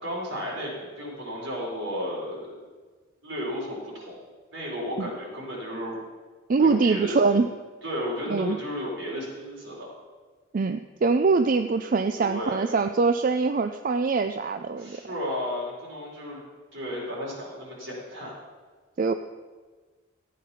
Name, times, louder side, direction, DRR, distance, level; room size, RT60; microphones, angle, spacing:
voice 1, 0.0-2.5 3.2-4.2 4.5-6.0 6.6-7.4 7.8-9.9 12.2-12.7 14.7-16.4 16.7-18.3, equal, 70° right, -3 dB, 4.8 m, -33 dB
voice 2, 6.5-7.5 8.3-8.6 10.5-15.0 19.0-19.1, right 4 dB, 40° right, 8 dB, 0.4 m, -23 dB
14.5 x 8.5 x 5.7 m, 1.4 s
head